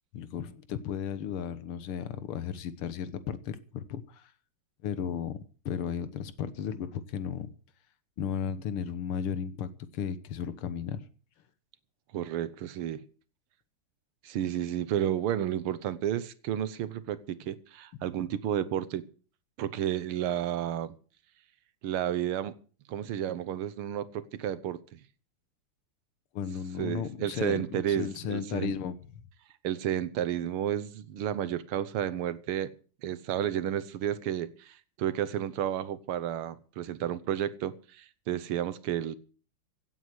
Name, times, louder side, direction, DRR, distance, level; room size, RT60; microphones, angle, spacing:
voice 1, 0.1-4.3 4.8-7.5 8.2-11.0 26.3-29.0, left 8 dB, 85° left, 2.0 m, -35 dB
voice 2, 12.1-13.0 14.2-19.1 19.6-20.9 21.8-22.5 22.9-25.0 26.8-28.7 29.6-32.7 33.0-39.2, right 10 dB, 85° right, 1.9 m, -32 dB
17.0 x 8.1 x 7.9 m
omnidirectional pair, 2.3 m